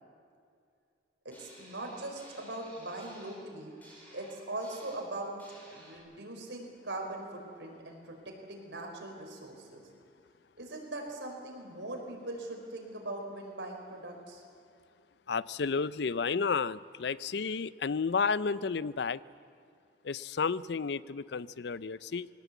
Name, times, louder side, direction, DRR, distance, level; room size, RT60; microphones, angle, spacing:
voice 1, 1.2-3.7 4.1-5.3 5.7-9.8 10.6-14.4, right 2 dB, 80° right, 1 dB, 4.6 m, -41 dB
sound 1, 1.3-6.0, equal, 10° left, 5.5 m, -56 dB
voice 2, 15.3-19.2 20.0-22.3, left 5 dB, 70° left, 18 dB, 0.5 m, -32 dB
21.0 x 18.5 x 8.4 m, 2.3 s
head